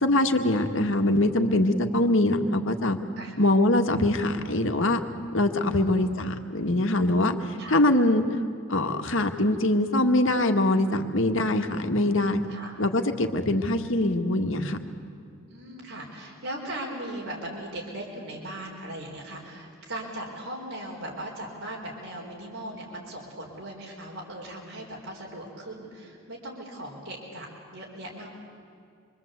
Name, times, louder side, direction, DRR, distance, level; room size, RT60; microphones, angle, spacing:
voice 1, 0.0-3.0 3.4-5.0 5.3-8.2 8.7-12.4 12.8-14.8, left 1 dB, 65° left, 5 dB, 1.9 m, -23 dB
voice 2, 5.6-6.0 7.6-7.8 12.5-12.7 15.5-28.4, right 1 dB, 85° right, -3 dB, 4.4 m, -38 dB
27.0 x 23.5 x 8.2 m, 2.5 s
head